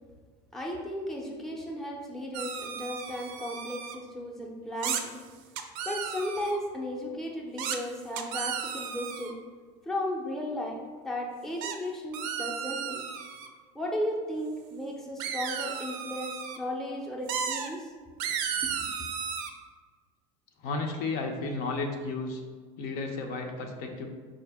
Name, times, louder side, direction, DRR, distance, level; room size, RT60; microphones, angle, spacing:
voice 1, 0.5-5.2 5.8-9.4 9.8-13.1 13.7-17.9 18.6-18.7, left 1 dB, ahead, -2 dB, 0.5 m, -35 dB
sound 1, 2.3-4.0 4.8-5.0 5.6-6.6 7.6-7.8 8.2-9.3 11.6-11.8 12.1-13.5 15.2-16.6 17.3-17.7 18.2-19.5, right 7 dB, 75° right, 0.4 m, -34 dB
voice 2, 20.6-22.4 22.8-24.1, left 3 dB, 60° left, 3 dB, 0.6 m, -33 dB
4.7 x 2.0 x 3.4 m, 1.5 s
supercardioid pair, 110°, 17 cm